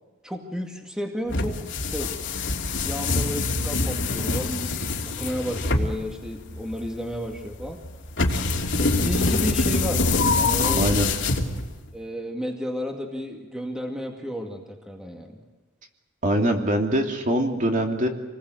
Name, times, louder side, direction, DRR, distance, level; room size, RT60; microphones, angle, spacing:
voice 1, 0.2-1.6 1.8-2.1 2.8-7.8 8.8-11.1 11.9-15.3, equal, 5° right, 1 dB, 2.2 m, -32 dB
sound 1, 1.3-11.9, left 3 dB, 60° left, 3.0 m, -25 dB
voice 2, 10.8-11.1 16.2-18.1, right 1 dB, 35° right, 2 dB, 2.9 m, -23 dB
28.0 x 20.5 x 8.0 m, 1.2 s
head